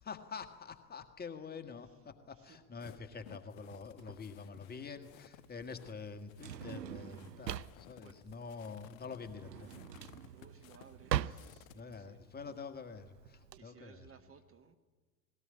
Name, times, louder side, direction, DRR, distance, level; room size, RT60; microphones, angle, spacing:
voice 1, 0.1-9.7 11.7-14.1, left 5 dB, 20° left, 7 dB, 1.6 m, -46 dB
voice 2, 2.3-2.9 8.0-8.3 10.1-12.5 13.5-14.8, right 7 dB, 25° right, 8 dB, 1.3 m, -61 dB
sound 1, 2.8-11.8, left 16 dB, 55° left, 0.6 m, -58 dB
Drawer open or close, 4.0-13.6, right 11 dB, 85° right, 0.6 m, -42 dB
19.0 x 18.0 x 10.0 m, 1.4 s
figure-of-eight pair, 85°, 49 cm